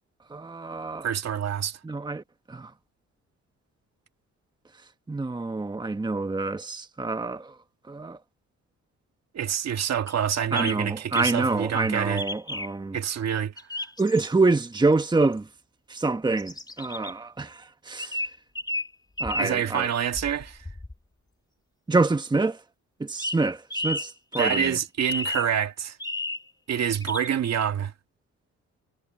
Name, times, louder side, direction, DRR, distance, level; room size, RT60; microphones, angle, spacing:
voice 1, 0.3-1.1 1.8-2.7 5.1-7.5 7.9-8.2 10.5-13.0 14.0-15.5 15.9-18.2 19.2-19.9 21.9-22.6 23.0-24.8, right 3 dB, 15° right, 1.3 m, -26 dB
voice 2, 1.0-1.8 9.3-12.2 12.9-13.5 19.4-20.6 24.4-26.0 26.7-27.9, right 8 dB, 60° right, 2.2 m, -27 dB
sound 1, 10.1-10.2 10.5-10.8 11.1-11.4 12.2-12.7 13.6-14.3 14.7-14.8 15.3-15.4 16.4-17.1 18.0-18.9 19.2-19.6 20.1-20.9 23.2-23.4 23.7-24.7 25.0-25.5 26.0-26.5 26.9-27.3, left 2 dB, 15° left, 2.5 m, -32 dB
cardioid pair, 90°, 30 cm